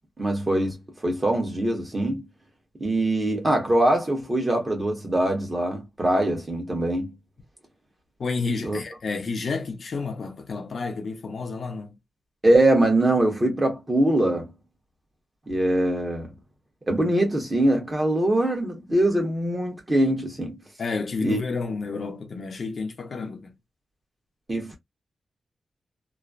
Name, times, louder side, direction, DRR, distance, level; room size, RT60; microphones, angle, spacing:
voice 1, 0.2-2.2 2.8-7.1 8.6-8.8 12.4-14.5 15.5-16.3 16.9-20.6 21.2-21.4 24.5-24.8, right 1 dB, 20° right, 1.2 m, -23 dB
voice 2, 8.2-12.0 20.8-23.6, left 4 dB, 55° left, 0.7 m, -30 dB
3.1 x 2.1 x 2.4 m
wide cardioid pair, 125°, 0 cm